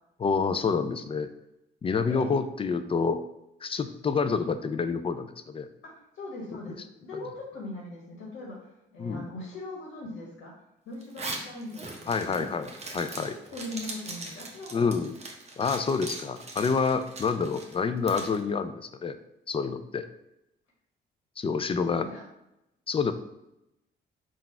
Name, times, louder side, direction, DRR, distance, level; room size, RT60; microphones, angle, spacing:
voice 1, 0.2-1.3 1.8-3.2 3.6-5.7 9.0-9.3 12.1-13.3 14.7-15.1 15.6-19.2 19.5-20.1 21.4-22.1 22.9-23.1, left 5 dB, 30° left, 10 dB, 0.4 m, -28 dB
voice 2, 5.9-6.8 7.0-10.5 10.8-12.3 13.5-14.9 22.0-22.2, left 2 dB, 90° left, -3 dB, 1.3 m, -40 dB
Zipper (clothing), 11.0-18.4, right 2 dB, 35° right, 0.8 m, -40 dB
3.9 x 2.4 x 4.3 m, 0.87 s
cardioid pair, 90°, 20 cm